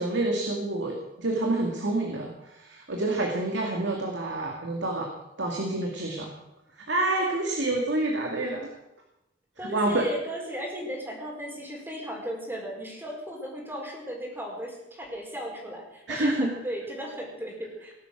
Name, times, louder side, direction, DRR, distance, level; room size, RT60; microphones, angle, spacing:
voice 1, 0.0-5.1 5.4-6.3 6.9-8.7 9.6-10.1 16.1-16.5, right 2 dB, 75° right, 1 dB, 2.4 m, -28 dB
voice 2, 9.6-17.9, equal, 10° right, -1 dB, 4.6 m, -36 dB
19.5 x 11.5 x 6.3 m, 0.90 s
head